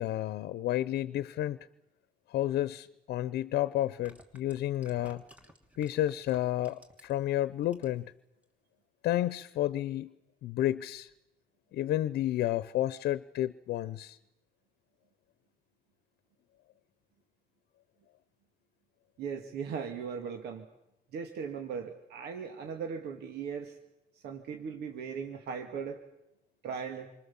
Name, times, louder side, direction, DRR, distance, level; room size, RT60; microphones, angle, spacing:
voice 1, 0.0-1.6 2.3-5.2 5.8-8.1 9.0-10.1 10.4-11.1 11.7-14.2, left 13 dB, 80° left, 15 dB, 0.9 m, -31 dB
sound 1, 2.9-3.0 3.8-7.3 7.6-8.1 8.4-8.5, equal, 10° right, 2.8 m, -56 dB
voice 2, 19.2-20.7 21.1-23.8 24.1-26.0 26.6-27.1, right 6 dB, 80° right, 4 dB, 2.5 m, -38 dB
28.0 x 25.5 x 7.3 m, 0.87 s
cardioid pair, 155°, 16 cm